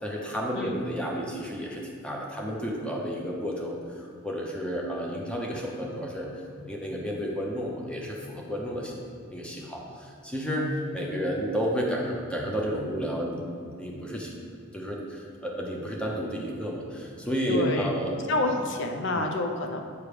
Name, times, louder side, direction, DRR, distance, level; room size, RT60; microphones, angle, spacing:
voice 1, 0.0-6.3 6.6-8.9 9.3-14.4 14.7-18.2 19.1-19.2, equal, 5° left, -2 dB, 0.8 m, -31 dB
voice 2, 17.5-19.8, left 2 dB, 60° left, 3 dB, 0.7 m, -28 dB
8.3 x 3.3 x 5.0 m, 2.2 s
head